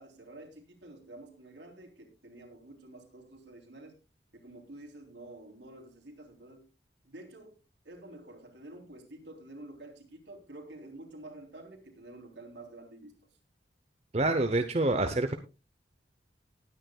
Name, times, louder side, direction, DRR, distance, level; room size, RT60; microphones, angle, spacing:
voice 1, 0.0-4.0 4.3-6.7 7.0-7.6 7.9-13.3, right 1 dB, 75° right, 2 dB, 3.5 m, -49 dB
voice 2, 14.1-15.4, right 2 dB, 35° right, 7 dB, 0.8 m, -27 dB
19.5 x 9.6 x 2.3 m, 0.29 s
head